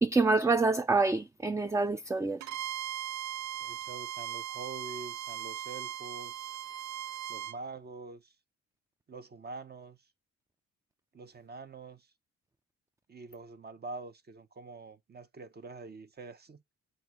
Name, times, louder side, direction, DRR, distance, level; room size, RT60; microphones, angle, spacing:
voice 1, 0.0-2.5, right 3 dB, 10° right, 0.4 m, -27 dB
Bowed string instrument, 2.4-7.6, right 11 dB, 70° right, 0.4 m, -38 dB
voice 2, 3.6-6.5 7.3-8.3 9.1-10.0 11.1-12.1 13.1-16.6, right 3 dB, 30° right, 1.1 m, -45 dB
7.8 x 2.6 x 6.0 m
cardioid pair, 90°, 30 cm